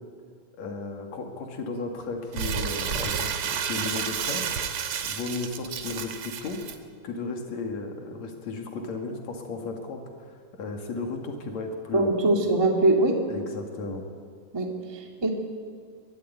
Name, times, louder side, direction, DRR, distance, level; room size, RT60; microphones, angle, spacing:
voice 1, 0.6-4.5 5.0-6.6 7.0-12.1 13.3-14.0, left 3 dB, 55° left, 3 dB, 3.2 m, -35 dB
Crumpling crinkling, 2.3-6.8, right 7 dB, 60° right, 1.5 m, -31 dB
sound 1, 2.9-8.0, right 2 dB, 45° right, 1.4 m, -43 dB
voice 2, 11.9-13.2 14.5-15.3, right 2 dB, 10° right, 1 dB, 1.4 m, -23 dB
22.0 x 13.0 x 9.5 m, 2.1 s
omnidirectional pair, 3.9 m